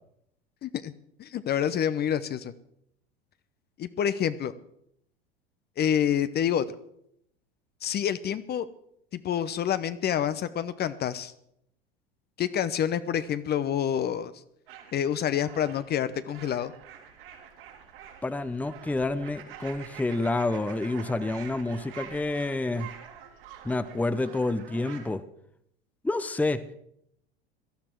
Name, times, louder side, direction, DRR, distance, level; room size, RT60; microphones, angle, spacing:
voice 1, 0.6-0.9 1.2-2.5 3.8-4.5 5.8-6.7 7.8-8.7 9.1-11.3 12.4-14.3 14.9-16.7, left 9 dB, 35° left, 14 dB, 0.9 m, -27 dB
sound 1, 14.7-25.1, right 9 dB, 70° right, 3.3 m, -47 dB
voice 2, 18.2-22.9 23.6-25.2 26.0-26.6, left 2 dB, 5° left, 13 dB, 0.8 m, -28 dB
18.0 x 13.0 x 4.6 m, 0.74 s
hypercardioid pair, 80°, 30 cm